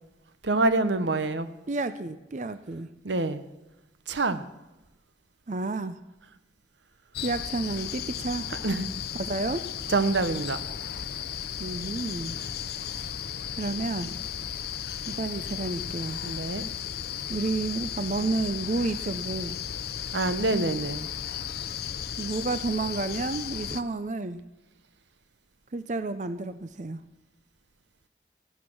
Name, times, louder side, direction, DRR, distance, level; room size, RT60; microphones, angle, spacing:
voice 1, 0.4-1.5 3.0-3.4 4.1-4.4 8.6-8.9 9.9-10.6 16.2-16.7 20.1-21.1, right 2 dB, 85° right, 12 dB, 0.9 m, -26 dB
voice 2, 1.7-2.9 5.5-6.0 7.2-8.5 9.1-9.6 11.6-12.4 13.6-14.1 15.1-16.2 17.3-19.6 22.2-24.4 25.7-27.0, right 3 dB, 40° right, 12 dB, 0.5 m, -30 dB
sound 1, 7.1-23.8, left 9 dB, 60° left, 0.6 m, -35 dB
18.0 x 12.0 x 6.2 m, 1.0 s
head